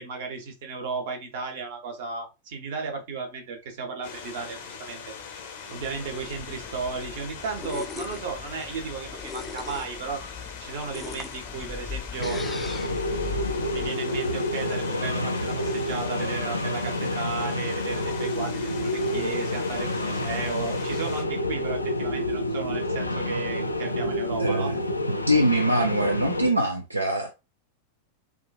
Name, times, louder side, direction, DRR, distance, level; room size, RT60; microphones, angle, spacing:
voice 1, 0.0-5.0 5.7-10.3 10.6-12.4 13.7-24.7, right 5 dB, 55° right, 0.9 m, -34 dB
sound 1, 4.0-21.2, left 6 dB, 55° left, 0.7 m, -41 dB
sound 2, 5.8-13.9, left 5 dB, 10° left, 0.4 m, -39 dB
sound 3, 12.2-26.5, left 1 dB, 85° left, 0.3 m, -28 dB
voice 2, 24.4-24.9 25.3-27.3, right 1 dB, 85° right, 0.4 m, -23 dB
3.6 x 2.3 x 2.3 m
figure-of-eight pair, 90°, 0 cm